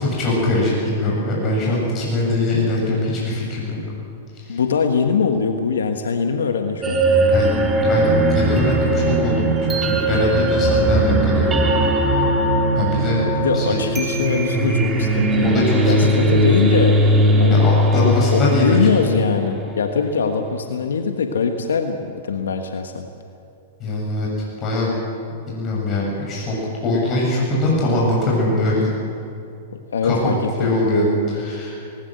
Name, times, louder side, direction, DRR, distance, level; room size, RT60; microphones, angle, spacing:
voice 1, 0.0-3.8 4.3-4.6 7.3-7.5 7.8-11.6 12.0-12.1 12.7-13.2 13.5-13.8 15.4-16.3 17.6-18.9 23.8-24.3 24.6-24.9 25.5-26.5 26.8-28.9 30.0-31.8, left 1 dB, 35° left, -4 dB, 7.6 m, -22 dB
voice 2, 4.5-7.0 13.4-17.1 17.4-17.6 18.0-23.1 29.9-30.7, left 5 dB, 80° left, 6 dB, 1.4 m, -22 dB
sound 1, 6.8-19.8, right 1 dB, 20° right, 3.1 m, -19 dB
19.5 x 19.5 x 7.8 m, 2.6 s
hypercardioid pair, 110°, 0 cm